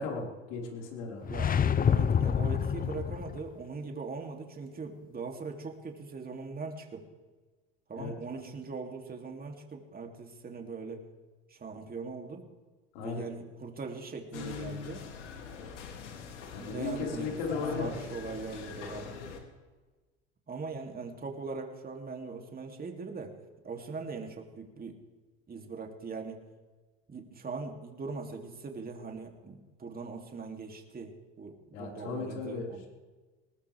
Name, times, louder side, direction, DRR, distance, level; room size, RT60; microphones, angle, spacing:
voice 1, 0.0-1.3 7.9-8.1 12.9-13.3 16.5-18.0 31.7-32.6, left 4 dB, 70° left, -1 dB, 5.2 m, -36 dB
sound 1, 1.2-3.5, left 7 dB, 25° left, 0.7 m, -27 dB
voice 2, 1.2-7.0 7.9-11.1 11.5-12.5 13.0-15.1 16.6-19.2 20.5-23.4 23.6-25.0 25.5-26.4 27.1-32.9, right 4 dB, 25° right, 2 dB, 3.1 m, -41 dB
sound 2, 14.3-19.4, left 6 dB, 85° left, 3.0 m, -42 dB
21.0 x 19.0 x 3.6 m, 1.3 s
hypercardioid pair, 85°, 35 cm